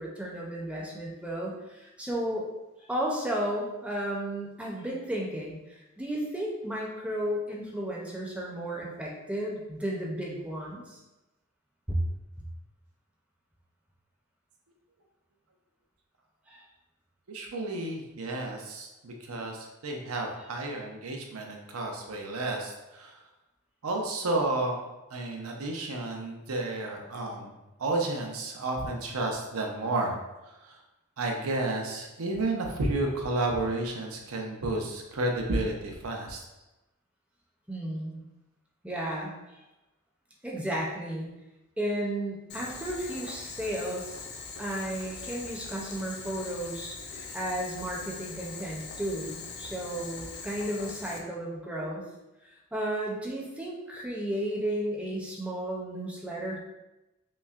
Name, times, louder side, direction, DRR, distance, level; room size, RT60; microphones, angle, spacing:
voice 1, 0.0-2.5 2.9-11.0 11.9-12.0 16.5-16.6 37.7-38.2 38.8-39.6 40.4-41.3 41.8-44.2 44.6-52.0 52.7-56.6, right 1 dB, 5° right, -3 dB, 0.5 m, -33 dB
voice 2, 17.3-23.2 23.8-24.8 25.1-30.2 30.4-30.8 31.2-36.4, right 2 dB, 85° right, 1 dB, 0.6 m, -31 dB
Boiling, 42.5-51.2, left 4 dB, 50° left, 0.5 m, -42 dB
5.3 x 2.1 x 2.4 m, 1.0 s
head